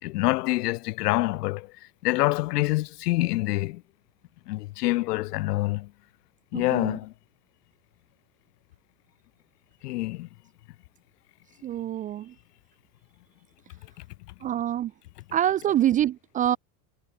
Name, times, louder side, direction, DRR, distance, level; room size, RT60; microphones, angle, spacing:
voice 1, 0.0-1.7 2.0-3.8 4.5-5.9 6.5-7.1 9.8-10.3, left 19 dB, 85° left, 7.5 m, -26 dB
voice 2, 6.5-7.0 11.6-12.3 14.4-14.9 15.3-16.6, right 11 dB, 20° right, 0.5 m, -25 dB
cardioid pair, 170°, 46 cm